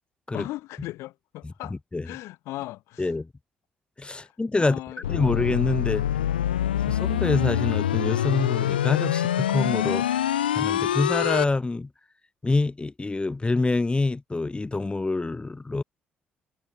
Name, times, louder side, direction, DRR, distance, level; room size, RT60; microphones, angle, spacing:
voice 1, 0.3-1.7 2.0-3.1 4.1-4.3 4.6-5.4, left 17 dB, 65° left, 2.2 m, -38 dB
voice 2, 1.4-2.1 3.0-3.3 4.0-6.0 6.7-11.9 12.4-15.8, left 3 dB, 20° left, 0.8 m, -26 dB
sound 1, 5.0-11.4, left 11 dB, 85° left, 0.6 m, -25 dB
figure-of-eight pair, 45°, 5 cm